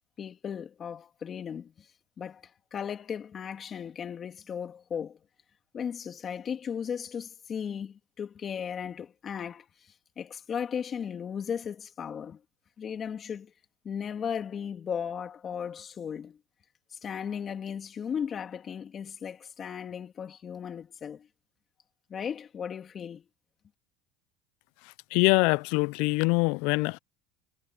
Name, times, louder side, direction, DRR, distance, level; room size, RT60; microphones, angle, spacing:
voice 1, 0.2-1.9 2.2-2.4 2.7-5.2 5.7-9.7 10.2-12.4 12.8-13.5 13.8-16.4 16.9-21.3 22.1-23.2, left 7 dB, 35° left, 3.1 m, -36 dB
voice 2, 24.8-27.0, left 27 dB, 75° left, 0.4 m, -24 dB
supercardioid pair, 125°, 0 cm